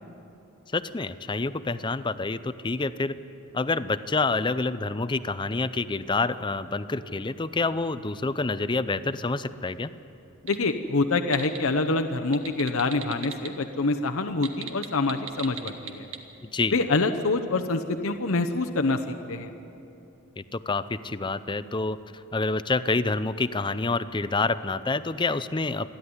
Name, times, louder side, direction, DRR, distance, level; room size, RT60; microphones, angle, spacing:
voice 1, 0.7-3.1 3.5-9.9 16.4-16.8 20.4-25.9, left 3 dB, 20° left, 13 dB, 0.5 m, -28 dB
sound 1, 10.3-10.6 11.0-11.6 12.2-13.5 14.3-16.2, right 8 dB, 85° right, 1.7 m, -36 dB
voice 2, 10.4-16.1 16.7-19.5, left 3 dB, 80° left, 6 dB, 0.9 m, -26 dB
28.5 x 11.5 x 9.7 m, 2.8 s
head